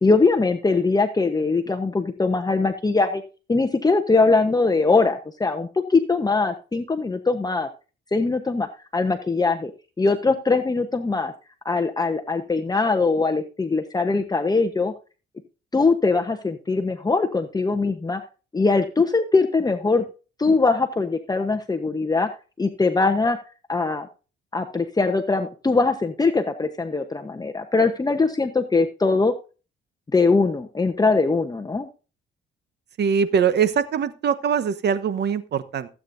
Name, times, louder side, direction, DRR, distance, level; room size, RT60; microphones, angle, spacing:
voice 1, 0.0-3.2 3.5-7.7 8.1-8.7 8.9-9.7 10.0-11.3 11.6-14.9 15.7-18.2 18.5-20.0 20.4-22.3 22.6-23.4 23.7-24.1 24.5-29.3 30.1-31.9, left 3 dB, 20° left, 5 dB, 1.1 m, -21 dB
voice 2, 33.0-35.9, right 7 dB, 60° right, 11 dB, 1.2 m, -22 dB
16.0 x 8.6 x 2.7 m, 0.33 s
cardioid pair, 90°, 20 cm